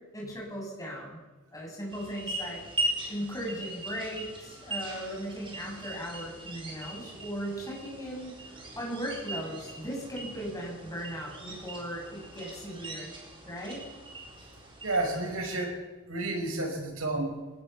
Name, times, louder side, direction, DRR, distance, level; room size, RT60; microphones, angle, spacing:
voice 1, 0.1-1.2 1.5-13.1 13.4-13.8, equal, 15° left, -2 dB, 7.8 m, -38 dB
sound 1, 1.9-15.7, right 1 dB, 25° right, 4.6 m, -40 dB
voice 2, 14.8-15.8 16.1-17.4, right 2 dB, 85° right, 3 dB, 5.3 m, -31 dB
20.5 x 19.0 x 7.1 m, 1.2 s
head